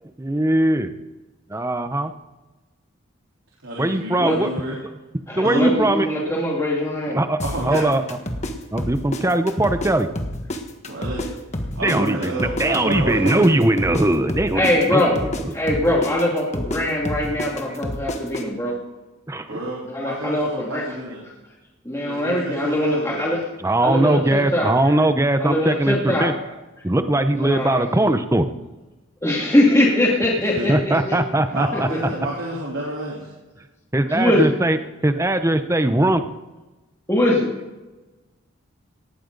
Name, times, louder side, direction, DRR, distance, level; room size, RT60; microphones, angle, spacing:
voice 1, 0.2-0.9 1.5-2.1 3.8-4.5 5.4-6.1 7.1-8.0 8.7-10.1 11.8-15.0 15.4-15.5 17.2-17.3 19.3-19.6 23.6-26.3 26.8-28.4 30.7-31.9 33.9-34.8 35.0-36.2, right 1 dB, 15° right, 9 dB, 0.7 m, -20 dB
voice 2, 3.6-4.8 5.4-5.7 7.4-8.0 10.9-11.3 11.8-13.6 19.5-21.2 22.0-23.3 30.5-30.7 31.5-33.3, right 1 dB, 80° right, -4 dB, 3.7 m, -30 dB
voice 3, 5.3-7.2 14.5-15.2 15.5-18.7 19.9-20.8 21.9-23.4 23.8-25.0 25.4-26.3 27.3-27.9 29.2-31.2 31.7-32.0 34.1-34.5 37.1-37.5, left 1 dB, 15° left, -3 dB, 2.3 m, -22 dB
sound 1, 7.4-9.9 10.1-14.0 14.3-18.4, left 1 dB, 35° left, 1.4 m, -29 dB
18.5 x 14.0 x 3.9 m, 1.1 s
head